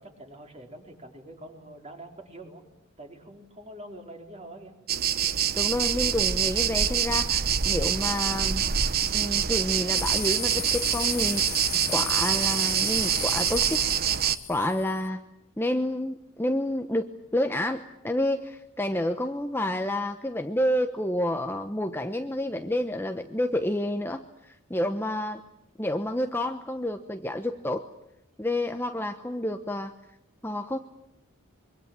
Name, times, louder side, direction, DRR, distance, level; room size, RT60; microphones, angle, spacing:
voice 1, 0.0-2.6 3.0-4.7, right 1 dB, 30° right, 3 dB, 4.3 m, -45 dB
sound 1, 4.9-14.4, right 9 dB, 45° right, 1.0 m, -25 dB
voice 2, 5.6-8.7 9.1-11.4 11.9-13.8 14.2-15.2 15.6-25.4 25.8-27.8 28.4-29.9 30.4-30.8, left 1 dB, 10° left, 6 dB, 1.0 m, -29 dB
sound 2, 9.9-15.1, left 10 dB, 70° left, 1.7 m, -35 dB
25.5 x 24.0 x 9.0 m, 0.80 s
head